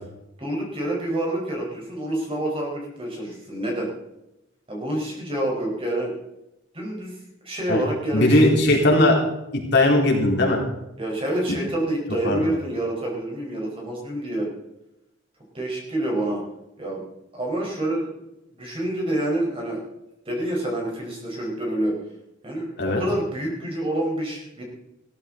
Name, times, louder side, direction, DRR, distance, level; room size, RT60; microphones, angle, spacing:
voice 1, 0.4-3.9 4.7-6.1 6.7-7.2 7.4-8.5 11.0-14.5 15.5-16.4 16.8-17.0 17.3-18.1 18.5-19.8 20.2-21.9 22.4-24.6, right 1 dB, 30° right, -2 dB, 4.9 m, -27 dB
voice 2, 8.1-9.2 9.5-10.6 12.2-12.5 22.8-23.0, left 1 dB, 60° left, -1 dB, 4.0 m, -18 dB
16.5 x 14.0 x 4.0 m, 0.90 s
head